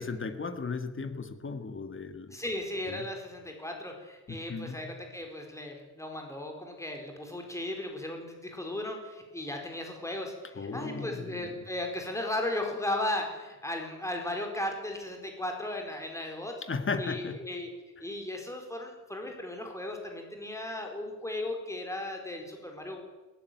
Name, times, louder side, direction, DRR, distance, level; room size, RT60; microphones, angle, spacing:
voice 1, 0.0-2.4 2.9-3.1 4.3-4.9 10.6-11.5 16.6-17.4, left 4 dB, 40° left, 8 dB, 2.0 m, -36 dB
voice 2, 2.3-16.5 17.0-17.7 18.0-23.0, left 1 dB, 10° left, 2 dB, 4.6 m, -36 dB
21.0 x 17.5 x 9.4 m, 1.2 s
wide cardioid pair, 150°, 31 cm